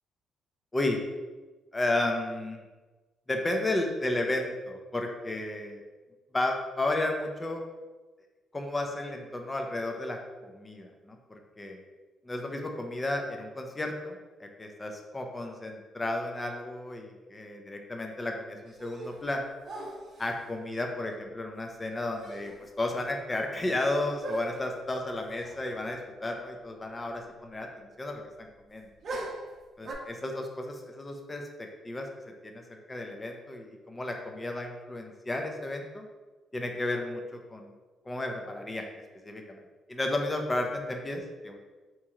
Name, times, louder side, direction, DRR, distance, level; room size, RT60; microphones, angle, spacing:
voice 1, 1.7-2.6 3.3-5.8 6.3-7.6 8.5-11.8 12.2-19.5 20.2-28.9 29.8-32.1 32.4-36.0 36.5-37.7 38.1-38.9 39.2-39.6 39.9-41.6, left 2 dB, 20° left, 3 dB, 0.5 m, -33 dB
sound 1, 18.7-19.3 19.6-20.4 21.9-22.0 22.2-22.7 23.0-23.1 24.2-24.8 25.4-25.6 25.9-26.0 29.0-29.9, right 2 dB, 50° right, 0.7 m, -40 dB
4.1 x 2.9 x 2.4 m, 1.2 s
cardioid pair, 90°, 0 cm